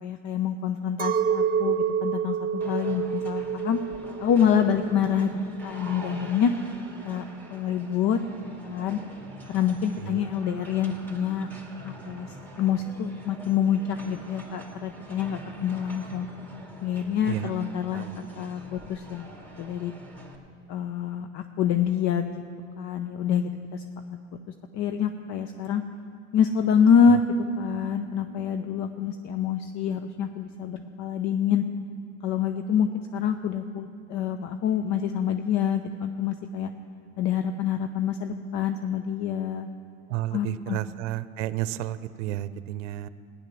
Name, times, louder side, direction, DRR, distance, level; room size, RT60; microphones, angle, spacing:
voice 1, 0.0-3.8 4.2-5.3 5.6-6.5 7.0-8.2 8.6-9.0 9.5-11.5 11.8-16.3 16.8-18.1 18.4-19.3 19.6-19.9 20.7-22.4 22.8-23.8 24.7-25.8 26.3-31.6 32.2-36.7 37.2-39.7 40.3-40.8, left 7 dB, 50° left, 8 dB, 0.8 m, -26 dB
Chink clink, 1.0-6.4, right 7 dB, 25° right, 1.2 m, -29 dB
sound 1, 2.6-20.4, right 1 dB, 5° left, 2.3 m, -45 dB
voice 2, 10.0-10.3 17.2-17.5 17.9-18.2 27.1-27.2 40.1-43.1, right 14 dB, 70° right, 15 dB, 0.7 m, -32 dB
15.0 x 10.0 x 6.1 m, 2.5 s
hypercardioid pair, 85°, 37 cm